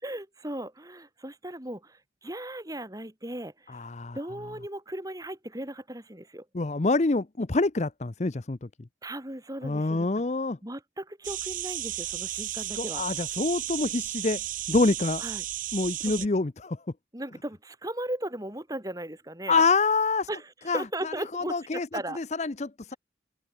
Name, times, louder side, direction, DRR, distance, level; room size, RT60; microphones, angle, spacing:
voice 1, 0.0-3.8 4.1-6.5 9.0-10.1 10.6-13.0 15.2-15.4 16.0-16.3 17.1-19.6 20.3-22.2, right 1 dB, 20° right, 3.4 m, -37 dB
voice 2, 3.7-4.2 6.5-8.7 9.6-10.6 12.7-14.4 14.7-15.2 15.7-16.8 19.5-20.3 20.7-21.9 22.1-22.9, left 3 dB, 40° left, 0.7 m, -26 dB
sound 1, 11.2-16.3, right 13 dB, 45° right, 1.1 m, -34 dB
open air
head